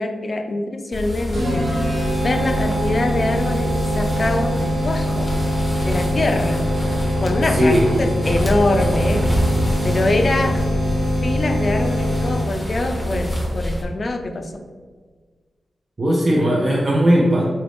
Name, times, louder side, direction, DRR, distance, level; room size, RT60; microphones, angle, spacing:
voice 1, 0.0-1.7 2.2-5.3 5.8-6.6 7.2-9.3 9.8-10.6 11.2-14.5, left 2 dB, 40° left, 5 dB, 0.4 m, -24 dB
sound 1, 0.9-13.8, equal, 10° left, 0.7 m, -26 dB
sound 2, 1.3-12.7, equal, 80° right, 1.1 m, -23 dB
voice 2, 7.4-7.9 16.0-17.5, equal, 35° right, -3 dB, 0.4 m, -17 dB
3.8 x 2.5 x 3.4 m, 1.5 s
wide cardioid pair, 120°, 0 cm